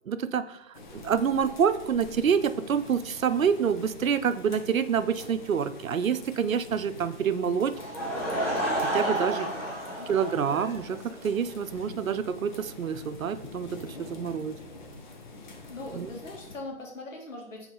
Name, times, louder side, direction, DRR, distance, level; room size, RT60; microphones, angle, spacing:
voice 1, 0.1-0.6 0.9-7.7 8.8-9.5 10.1-14.6 15.9-16.1, right 7 dB, 90° right, 12 dB, 0.6 m, -27 dB
sound 1, 0.7-16.6, left 3 dB, 35° left, 1.1 m, -46 dB
Laughter / Crowd, 7.7-11.3, right 1 dB, ahead, 1.2 m, -31 dB
voice 2, 15.7-17.7, left 2 dB, 70° left, -1 dB, 2.5 m, -41 dB
4.7 x 3.9 x 5.4 m, 0.75 s
hypercardioid pair, 150°, 39 cm